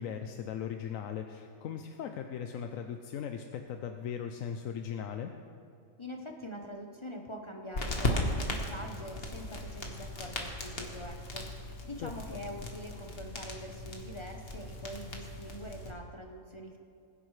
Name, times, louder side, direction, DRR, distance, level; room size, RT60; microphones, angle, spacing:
voice 1, 0.0-5.3 12.0-12.1, left 8 dB, 75° left, 6 dB, 1.0 m, -38 dB
voice 2, 6.0-16.8, equal, 30° left, 2 dB, 0.6 m, -44 dB
sound 1, 7.7-15.9, left 1 dB, 45° left, 1.4 m, -37 dB
20.5 x 10.0 x 3.2 m, 2.4 s
omnidirectional pair, 1.4 m